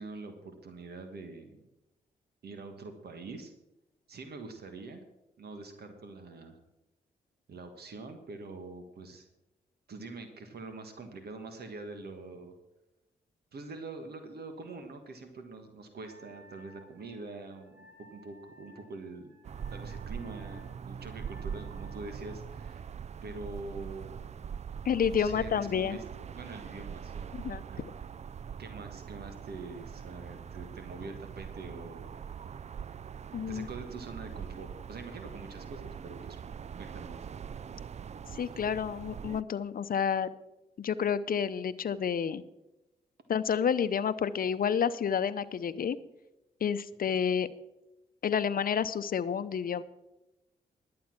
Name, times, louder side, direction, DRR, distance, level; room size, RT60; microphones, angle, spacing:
voice 1, 0.0-1.6 2.4-3.5 4.1-5.0 5.4-6.6 7.5-9.3 9.9-12.5 13.5-19.3 19.7-22.8 23.2-24.2 25.1-27.9 28.6-32.1 33.5-36.4 36.8-37.2, right 3 dB, 70° right, 7 dB, 1.6 m, -44 dB
Wind instrument woodwind instrument, 16.0-22.3, equal, 15° right, 3.4 m, -58 dB
sound 1, 19.4-39.4, right 7 dB, 40° right, 0.4 m, -42 dB
voice 2, 24.8-26.0 27.3-27.9 33.3-33.7 38.3-40.3 40.8-42.4 43.3-46.0 46.6-47.5 48.2-49.8, left 7 dB, 55° left, 13 dB, 0.7 m, -30 dB
11.5 x 8.5 x 6.0 m, 0.97 s
supercardioid pair, 55°, 17 cm